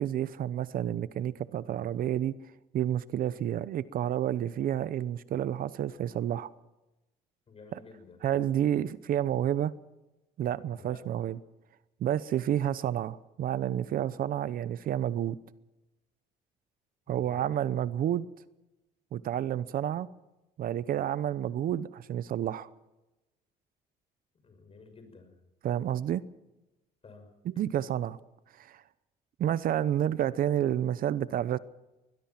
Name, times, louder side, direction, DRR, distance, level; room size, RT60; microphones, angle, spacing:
voice 1, 0.0-2.3 2.7-6.5 7.7-7.8 8.2-9.7 10.4-11.4 12.0-15.4 17.1-18.3 19.1-20.1 20.6-22.7 25.6-26.2 27.4-28.2 28.6-28.8 29.4-31.6, right 11 dB, 55° right, 17 dB, 0.8 m, -30 dB
voice 2, 7.5-8.2 10.6-11.0 17.1-17.7 24.4-25.3 27.0-27.3, left 4 dB, 35° left, 7 dB, 6.3 m, -52 dB
22.0 x 21.0 x 5.9 m, 1.0 s
cardioid pair, 110°, 17 cm